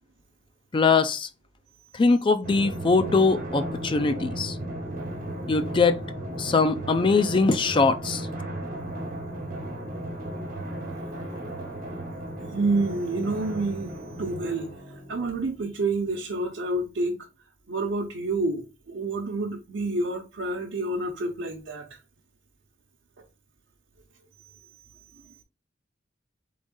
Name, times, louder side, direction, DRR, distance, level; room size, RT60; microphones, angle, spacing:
voice 1, 0.7-1.3 2.0-4.5 5.5-6.0 6.4-8.2, left 4 dB, 25° left, 0.4 m, -22 dB
Drum, 2.4-15.5, right 1 dB, 50° right, 1.3 m, -35 dB
voice 2, 12.4-17.2 17.7-22.0, right 2 dB, 80° right, 0.8 m, -29 dB
3.9 x 3.5 x 3.8 m
head